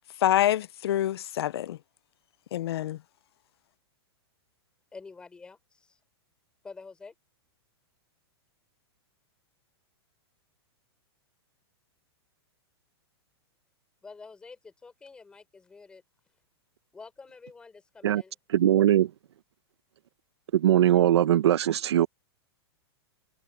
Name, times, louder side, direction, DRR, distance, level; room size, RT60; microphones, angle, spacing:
voice 1, 0.2-1.8 2.5-3.0, left 12 dB, 70° left, 0.4 m, -26 dB
voice 2, 4.9-6.0 6.6-7.1 14.0-16.0 16.9-18.3, left 4 dB, 5° left, 5.5 m, -48 dB
voice 3, 18.5-19.1 20.5-22.1, right 11 dB, 80° right, 1.0 m, -21 dB
supercardioid pair, 180°, 14 cm